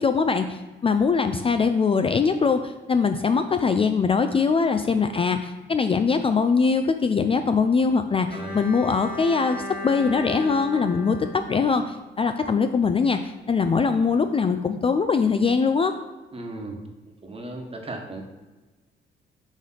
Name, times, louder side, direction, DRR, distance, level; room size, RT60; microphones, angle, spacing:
voice 1, 0.0-15.9, left 5 dB, 30° left, 8 dB, 0.4 m, -22 dB
Bowed string instrument, 8.3-12.4, left 1 dB, 45° left, 2.2 m, -37 dB
voice 2, 8.3-8.7 16.3-16.8 17.2-18.2, right 2 dB, 30° right, 2 dB, 1.3 m, -36 dB
6.3 x 3.3 x 5.6 m, 1.2 s
cardioid pair, 90°, 20 cm